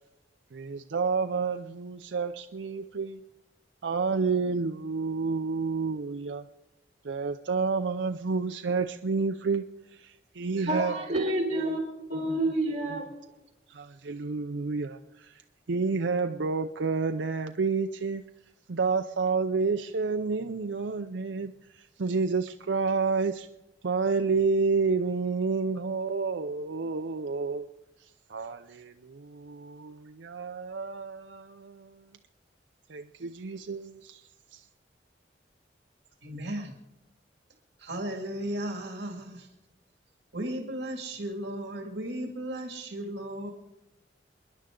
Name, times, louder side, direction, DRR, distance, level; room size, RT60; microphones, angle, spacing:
voice 1, 0.5-3.2 3.8-6.5 7.0-9.6 9.9-11.0 11.2-11.3 13.7-15.3 15.7-18.2 18.7-23.5 23.8-27.7 28.3-32.0 32.9-34.2 34.5-34.6, right 4 dB, 85° right, 0.6 m, -29 dB
voice 2, 10.6-11.8 12.1-13.0, right 1 dB, 40° right, 4.4 m, -28 dB
voice 3, 36.2-36.7 37.8-39.5 40.3-43.5, right 1 dB, 70° right, 2.3 m, -35 dB
27.5 x 11.0 x 3.8 m
head